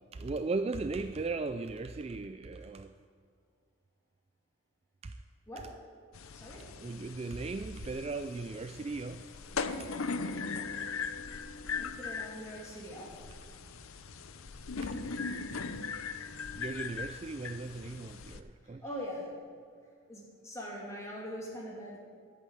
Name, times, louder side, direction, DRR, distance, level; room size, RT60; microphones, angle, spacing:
voice 1, 0.1-2.9 5.0-5.2 6.8-9.2 9.8-9.9 14.8-15.0 16.5-18.8, right 3 dB, 30° right, 9 dB, 0.3 m, -37 dB
sound 1, 6.1-18.4, left 5 dB, 80° left, 0.7 m, -39 dB
voice 2, 11.7-13.1 18.6-19.3 20.1-22.0, equal, 15° left, -3 dB, 2.8 m, -42 dB
11.0 x 8.5 x 9.0 m, 2.2 s
head